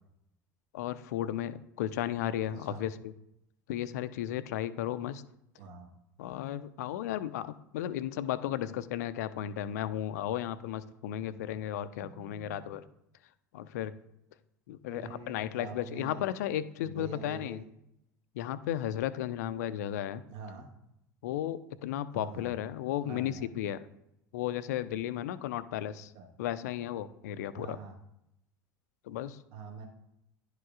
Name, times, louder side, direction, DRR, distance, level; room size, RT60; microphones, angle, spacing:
voice 1, 0.7-3.1 3.7-5.2 6.2-12.8 13.5-13.9 14.7-17.6 18.3-20.2 21.2-23.9 24.3-26.1 26.4-27.8 29.0-29.4, left 11 dB, 60° left, 14 dB, 0.4 m, -34 dB
voice 2, 5.6-5.9 12.0-12.8 14.9-16.3 16.8-17.6 20.3-20.7 22.1-22.6 23.0-23.5 26.1-26.3 27.5-27.9 29.5-29.9, right 5 dB, 50° right, 0 dB, 1.3 m, -45 dB
11.0 x 4.8 x 2.4 m, 0.82 s
figure-of-eight pair, 70°, 10 cm